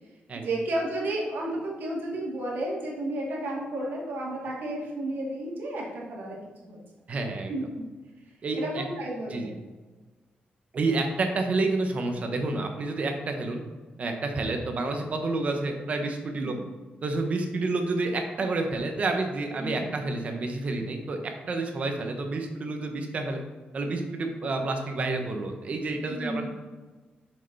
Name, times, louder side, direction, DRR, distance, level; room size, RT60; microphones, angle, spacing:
voice 1, 0.4-6.4 6.6-6.8 7.5-7.8 8.5-9.5 16.4-16.7 19.6-19.9 26.1-26.5, right 1 dB, 75° right, -4 dB, 2.5 m, -32 dB
voice 2, 7.1-7.5 8.4-8.8 9.3-9.5 10.7-13.6 14.0-16.5 17.0-23.4 23.7-26.5, right 3 dB, 40° right, 4 dB, 1.1 m, -29 dB
6.8 x 6.3 x 4.2 m, 1.3 s
wide cardioid pair, 160°, 3 cm